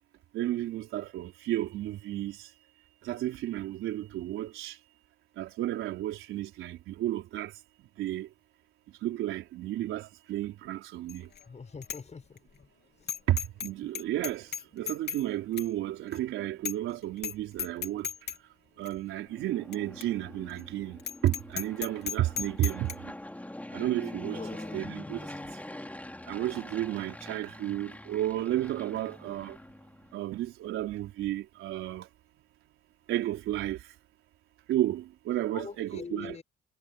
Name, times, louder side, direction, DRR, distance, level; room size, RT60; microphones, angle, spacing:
voice 1, 0.3-2.5 3.0-4.8 5.4-7.5 8.0-8.3 9.0-11.3 13.3-18.1 18.8-23.1 23.7-24.4 24.7-25.3 26.2-29.6 30.1-32.1 33.1-33.9 34.7-36.4, right 14 dB, 90° right, 4.4 m, -32 dB
Bicycle bell, 11.1-11.4 11.8-12.0 12.4-12.5 13.1-13.7 13.9-15.2 15.6-15.7 16.1-16.2 16.6-16.9 17.2-17.3 17.6-18.4 18.8-18.9 19.7-19.8 20.0-20.1 20.5-20.6 21.0-22.9, left 8 dB, 55° left, 3.3 m, -35 dB
voice 2, 11.5-12.4 24.3-24.9 35.5-36.4, left 5 dB, 35° left, 7.2 m, -43 dB
Fixed-wing aircraft airplane, 19.2-30.3, left 1 dB, 5° left, 3.6 m, -44 dB
cardioid pair, 90°, 20 cm